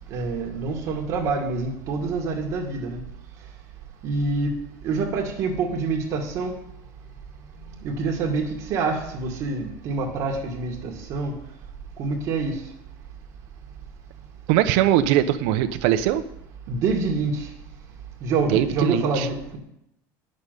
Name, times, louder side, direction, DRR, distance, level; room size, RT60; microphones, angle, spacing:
voice 1, 0.1-3.0 4.0-4.6 4.8-6.6 7.8-11.3 12.0-12.6 16.7-17.5 18.2-19.6, right 4 dB, 40° right, 1 dB, 2.0 m, -26 dB
voice 2, 14.5-16.2 18.5-19.3, right 12 dB, 65° right, 10 dB, 1.0 m, -21 dB
10.5 x 6.7 x 9.2 m, 0.76 s
cardioid pair, 180°, 8 cm